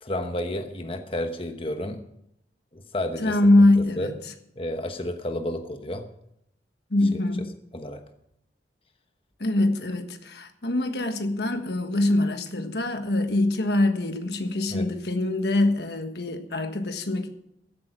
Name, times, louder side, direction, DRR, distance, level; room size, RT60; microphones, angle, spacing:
voice 1, 0.0-2.0 2.7-3.4 3.8-4.1 4.6-6.0 7.1-7.2 7.7-8.0 14.7-14.9, left 1 dB, 30° left, 1.0 m, -31 dB
voice 2, 3.2-4.1 6.9-7.5 9.4-17.3, left 2 dB, 65° left, 1.5 m, -23 dB
15.0 x 8.4 x 6.0 m
head